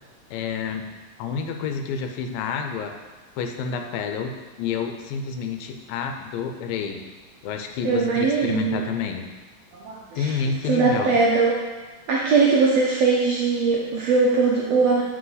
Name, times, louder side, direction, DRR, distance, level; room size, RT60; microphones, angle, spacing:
voice 1, 0.3-0.8 1.2-2.9 3.4-7.0 7.4-9.3 10.2-11.1, left 6 dB, 80° left, 5 dB, 2.3 m, -29 dB
voice 2, 7.8-8.8 9.7-10.4 10.6-11.6 12.1-15.0, right 4 dB, 80° right, -4 dB, 1.5 m, -20 dB
8.6 x 5.3 x 4.0 m, 1.3 s
omnidirectional pair, 4.1 m